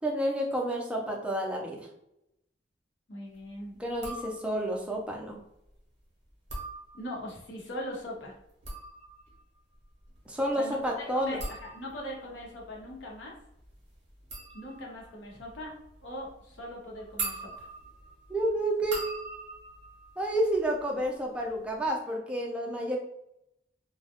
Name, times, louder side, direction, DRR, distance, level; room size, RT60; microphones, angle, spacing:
voice 1, 0.0-1.9 3.8-5.4 10.3-11.4 18.3-19.0 20.2-23.0, right 1 dB, 5° right, -1 dB, 0.4 m, -30 dB
voice 2, 3.1-3.7 6.9-8.3 10.6-11.4 11.7-13.3 14.5-15.7 16.0-17.7, left 1 dB, 80° left, -2 dB, 0.8 m, -40 dB
sound 1, 3.9-4.8 6.3-7.4 8.4-21.1 21.4-21.9, right 3 dB, 40° right, 0.7 m, -42 dB
2.2 x 2.0 x 2.8 m, 0.81 s
head